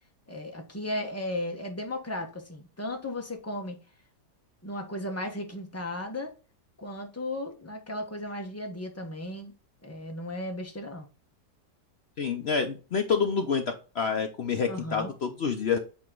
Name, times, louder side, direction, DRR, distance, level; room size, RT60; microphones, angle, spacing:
voice 1, 0.3-3.8 4.6-6.3 6.8-9.5 9.8-11.1 14.7-15.1, left 1 dB, 10° left, 0.8 m, -35 dB
voice 2, 12.2-15.8, left 5 dB, 60° left, 0.6 m, -28 dB
8.4 x 3.0 x 3.7 m
omnidirectional pair, 1.9 m